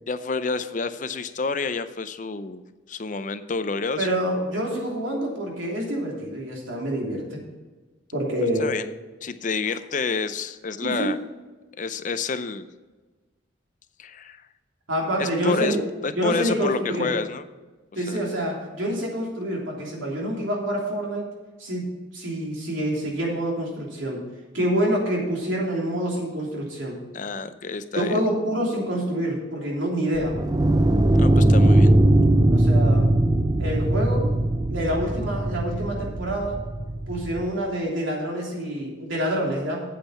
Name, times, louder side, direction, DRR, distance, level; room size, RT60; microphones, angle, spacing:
voice 1, 0.1-2.6 2.9-4.1 8.6-8.8 9.2-11.2 11.8-12.7 14.0-14.5 15.2-15.8 16.0-17.4 18.1-18.2 27.1-28.2 31.2-31.9, left 4 dB, 40° left, 11 dB, 0.5 m, -28 dB
voice 2, 4.0-7.4 8.1-8.7 10.8-11.1 14.9-15.8 16.1-17.1 17.9-21.3 21.6-21.8 22.1-24.2 24.5-27.0 27.9-30.4 32.5-33.1 33.6-34.3 34.7-36.6 37.1-39.8, right 1 dB, 85° right, -2 dB, 3.1 m, -27 dB
sound 1, 30.2-37.4, right 1 dB, 20° right, 0.4 m, -20 dB
8.5 x 8.2 x 5.7 m, 1.3 s
head